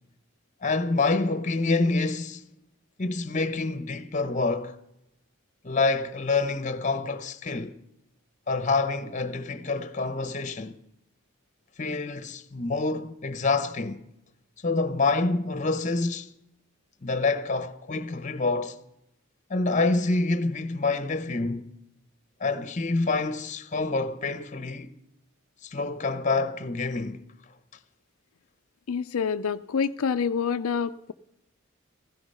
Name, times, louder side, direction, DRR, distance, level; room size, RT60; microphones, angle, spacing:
voice 1, 0.6-2.4 3.0-4.8 5.6-7.8 8.5-10.8 11.8-14.0 14.6-16.3 17.0-18.8 19.5-21.7 22.4-24.9 25.6-27.2, left 3 dB, 35° left, 0.9 m, -27 dB
voice 2, 28.9-31.1, left 6 dB, 80° left, 0.5 m, -27 dB
16.0 x 15.5 x 5.5 m
head